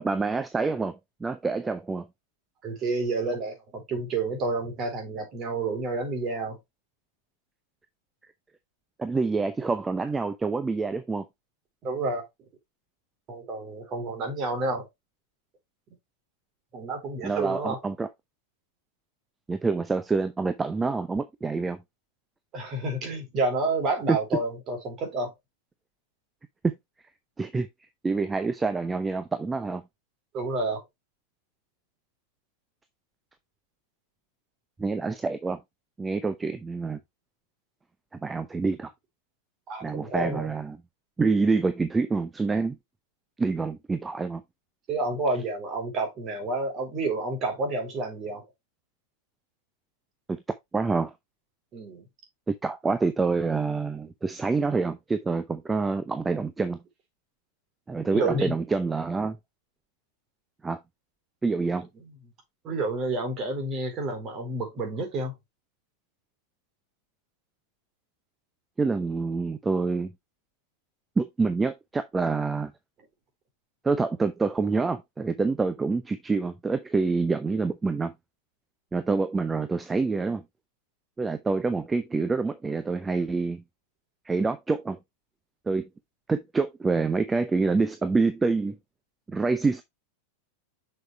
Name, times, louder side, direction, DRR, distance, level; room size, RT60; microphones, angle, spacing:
voice 1, 0.0-2.1 9.0-11.3 17.2-18.1 19.5-21.8 24.1-24.2 27.4-27.7 28.0-29.8 34.8-35.6 36.0-37.0 38.2-38.9 39.8-40.8 41.2-42.8 43.4-44.4 50.3-50.4 50.7-51.1 52.5-56.8 57.9-59.4 60.6-60.8 61.4-61.9 68.8-70.1 71.2-72.7 73.8-78.1 78.9-80.4 81.2-83.6 84.2-85.0 85.7-85.9 86.3-88.8 89.3-89.8, right 4 dB, 10° right, 0.7 m, -27 dB
voice 2, 2.6-6.6 11.8-12.2 13.3-14.9 16.7-17.8 22.5-25.3 30.3-30.8 39.7-40.5 44.9-48.4 51.7-52.1 58.1-58.5 62.6-65.3, right 2 dB, 30° right, 3.8 m, -29 dB
6.6 x 6.5 x 3.3 m
figure-of-eight pair, 90°, 0 cm